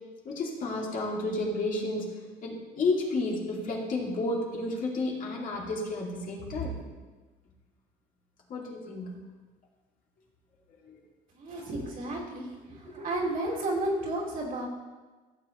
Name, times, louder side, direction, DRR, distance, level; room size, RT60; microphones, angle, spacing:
voice 1, 0.2-2.1 2.4-6.8 8.5-9.1 10.9-11.0 11.5-11.7, left 2 dB, 55° left, -3 dB, 2.5 m, -31 dB
voice 2, 11.4-12.5 12.8-14.7, right 1 dB, 60° right, -4 dB, 2.9 m, -32 dB
15.5 x 7.4 x 3.1 m, 1.3 s
cardioid pair, 110°, 17 cm